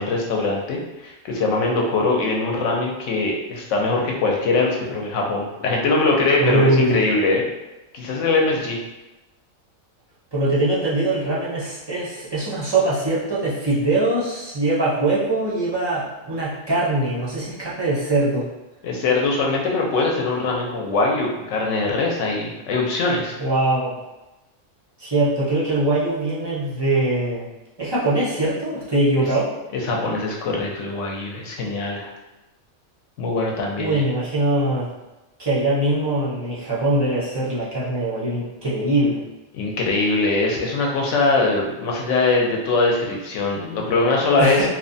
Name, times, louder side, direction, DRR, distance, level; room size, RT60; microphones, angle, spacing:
voice 1, 0.0-7.4 7.9-8.8 18.8-23.4 29.7-32.1 33.2-34.0 39.5-44.7, left 3 dB, 70° left, -1 dB, 0.9 m, -22 dB
voice 2, 6.4-7.0 10.3-18.5 23.4-24.0 25.0-27.5 27.8-29.5 33.8-34.9 35.4-39.2 44.4-44.7, right 2 dB, 35° right, -8 dB, 0.4 m, -22 dB
2.8 x 2.1 x 2.6 m, 1.0 s
omnidirectional pair, 1.4 m